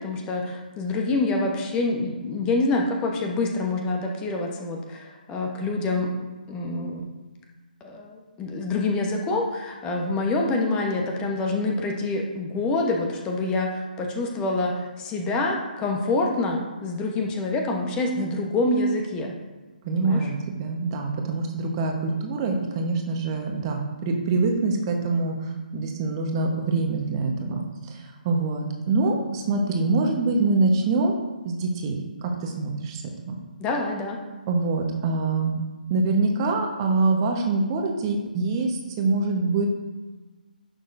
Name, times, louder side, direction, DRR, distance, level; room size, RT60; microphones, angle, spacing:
voice 1, 0.0-6.1 6.5-7.0 7.8-19.3 19.9-20.2 33.6-34.2, left 2 dB, 15° left, 1 dB, 1.0 m, -26 dB
voice 2, 19.8-20.3 20.6-31.1 31.4-33.4 34.5-35.6 35.9-39.7, right 3 dB, 30° right, 2 dB, 1.1 m, -25 dB
10.5 x 6.5 x 2.6 m, 1.2 s
figure-of-eight pair, 145°, 5 cm